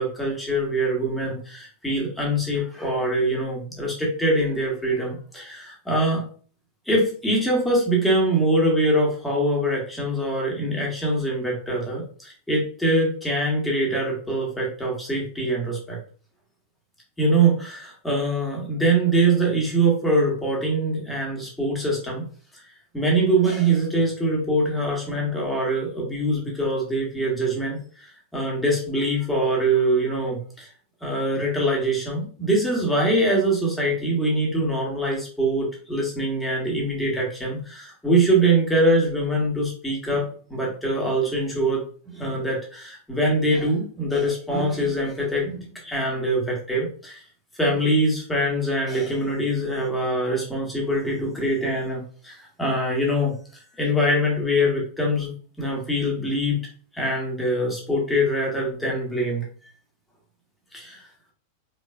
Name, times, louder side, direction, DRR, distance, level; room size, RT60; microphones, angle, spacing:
voice 1, 0.0-6.2 6.8-16.0 17.2-22.3 22.9-30.7 31.0-41.8 42.1-47.2 47.6-56.6 56.9-59.4 60.7-61.0, right 1 dB, 5° left, -3 dB, 1.7 m, -23 dB
4.6 x 4.3 x 2.5 m, 0.44 s
figure-of-eight pair, 90°, 0 cm